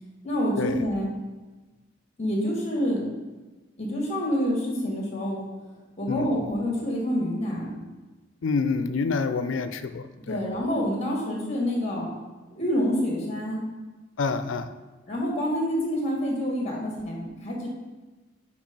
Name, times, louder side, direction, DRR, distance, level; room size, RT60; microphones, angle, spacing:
voice 1, 0.2-1.1 2.2-3.0 3.8-5.4 6.0-7.8 10.3-12.1 12.6-13.6 15.1-17.7, equal, 35° left, -2 dB, 1.7 m, -27 dB
voice 2, 6.1-6.4 8.4-10.4 14.2-14.7, left 4 dB, 90° left, 11 dB, 0.4 m, -27 dB
5.2 x 4.7 x 5.2 m, 1.2 s
head